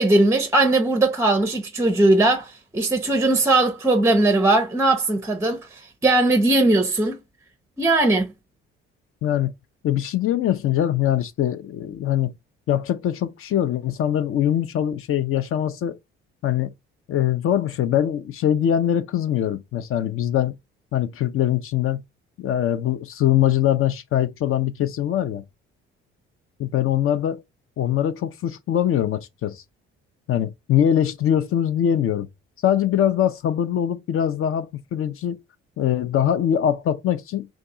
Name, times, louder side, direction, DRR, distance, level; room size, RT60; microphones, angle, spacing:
voice 1, 0.0-7.2 7.8-8.3, right 2 dB, 10° right, 0.5 m, -19 dB
voice 2, 9.2-9.5 9.8-12.3 12.7-16.0 16.4-16.7 17.1-20.6 20.9-22.0 22.4-25.4 26.6-27.4 27.8-29.6 30.3-32.3 32.6-35.4 35.8-37.5, left 10 dB, 45° left, 0.4 m, -22 dB
2.6 x 2.4 x 3.7 m
hypercardioid pair, 55°, 30 cm